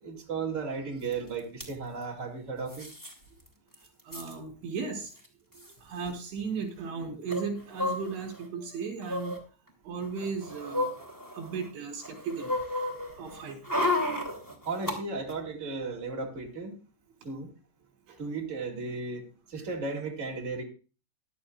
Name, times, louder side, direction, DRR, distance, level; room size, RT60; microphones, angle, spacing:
voice 1, 0.0-2.9 14.6-16.7 17.2-17.5 18.2-19.2 19.5-20.6, right 4 dB, 30° right, 0 dB, 1.4 m, -35 dB
sound 1, 1.1-1.2 1.4-1.7 2.7-3.1 3.5-3.6 3.7-4.3 5.2-5.3 5.5-5.7 7.3-8.4 9.0-9.4 10.0-11.7 12.0-14.9 15.3-15.4, left 1 dB, 25° left, 0.4 m, -32 dB
voice 2, 4.0-5.1 5.8-9.4 9.8-10.9 11.3-12.6 13.2-13.6 18.1-18.2, right 5 dB, 80° right, 0 dB, 6.0 m, -36 dB
16.0 x 12.0 x 2.4 m, 0.34 s
omnidirectional pair, 5.2 m